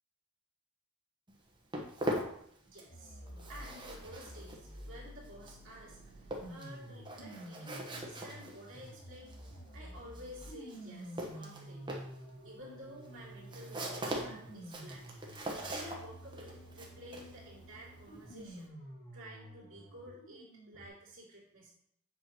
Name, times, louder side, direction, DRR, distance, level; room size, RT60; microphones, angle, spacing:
Walk footsteps, 1.3-3.0 3.3-18.7, right 1 dB, 20° right, 1.2 m, -42 dB
voice 1, 2.6-9.3 9.7-12.0 12.4-15.1 15.3-18.7 19.1-21.7, equal, 65° right, -8 dB, 2.5 m, -52 dB
sound 1, 2.9-20.9, right 1 dB, 40° left, 2.1 m, -50 dB
8.5 x 6.0 x 3.0 m, 0.67 s
head